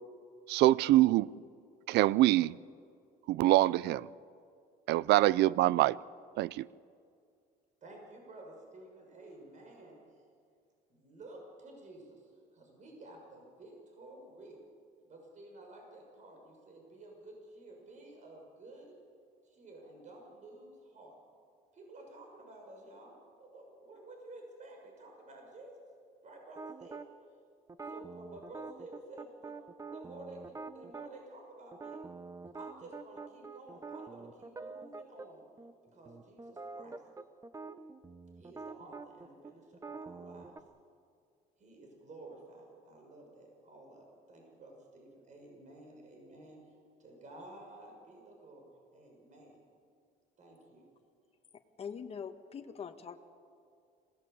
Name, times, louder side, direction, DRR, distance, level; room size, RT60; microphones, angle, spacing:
voice 1, 0.5-1.3 1.9-2.6 3.3-4.1 4.9-6.0 6.4-6.7, right 16 dB, 80° right, 0.5 m, -25 dB
voice 2, 7.8-10.0 10.9-14.6 15.0-18.9 19.4-21.1 21.7-25.8 26.2-27.1 27.8-29.5 29.9-32.0 32.5-35.4 35.9-37.0 38.4-40.6 41.6-46.6 47.0-49.6 50.4-50.8, right 2 dB, 45° right, 6.3 m, -52 dB
sound 1, 26.6-27.1 27.7-31.1 31.7-35.3 35.6-35.7 36.1-40.6, right 4 dB, 20° right, 0.9 m, -46 dB
voice 3, 51.8-53.2, left 6 dB, 35° left, 1.5 m, -43 dB
26.5 x 18.0 x 8.1 m
cardioid pair, 110°, 17 cm